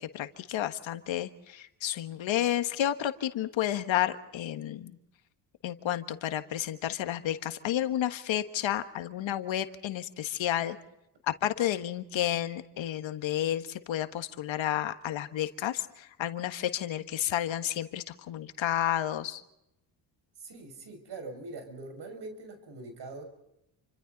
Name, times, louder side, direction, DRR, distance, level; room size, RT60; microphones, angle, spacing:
voice 1, 0.0-4.9 5.6-10.8 11.3-19.4, left 11 dB, 65° left, 9 dB, 1.5 m, -31 dB
voice 2, 20.4-23.2, right 3 dB, 55° right, 6 dB, 6.3 m, -43 dB
29.0 x 25.0 x 4.0 m, 0.84 s
cardioid pair, 90°, 49 cm